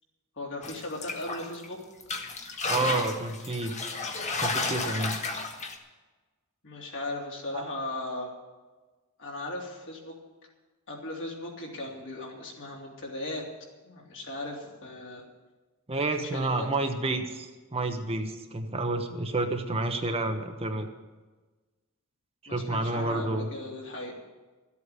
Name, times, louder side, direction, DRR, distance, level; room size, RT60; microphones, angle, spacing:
voice 1, 0.4-1.8 6.6-8.3 9.2-10.2 10.9-13.5 13.8-15.3 16.0-16.9 22.5-24.1, left 2 dB, 55° left, -1 dB, 3.2 m, -37 dB
sound 1, 0.6-1.7 2.0-5.8, left 3 dB, 30° left, 1.4 m, -32 dB
voice 2, 2.7-3.8 4.4-5.2 7.5-7.7 15.9-20.9 22.5-23.5, right 2 dB, 25° right, 5 dB, 1.0 m, -30 dB
13.5 x 8.3 x 9.4 m, 1.3 s
head